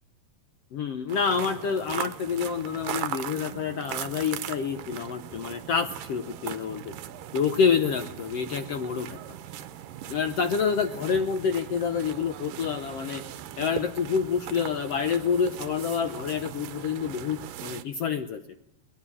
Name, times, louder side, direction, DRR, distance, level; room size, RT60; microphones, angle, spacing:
voice 1, 0.7-6.9 7.3-9.2 10.1-13.2 13.6-18.4, left 6 dB, 70° left, 8 dB, 1.5 m, -27 dB
sound 1, 1.1-17.8, right 11 dB, 80° right, 2.5 m, -39 dB
22.5 x 20.0 x 7.2 m, 0.84 s
omnidirectional pair, 3.9 m